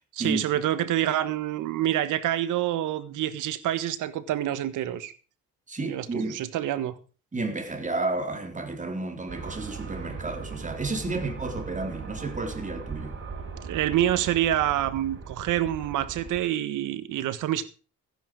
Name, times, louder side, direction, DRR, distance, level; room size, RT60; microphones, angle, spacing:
voice 1, 0.1-5.1 5.8-7.0 13.6-17.7, right 12 dB, 85° right, 1.5 m, -27 dB
voice 2, 5.7-6.4 7.3-13.2, right 2 dB, 25° right, 3.8 m, -31 dB
sound 1, 9.3-16.4, right 5 dB, 40° right, 6.0 m, -39 dB
15.5 x 10.0 x 4.8 m
cardioid pair, 90°, 30 cm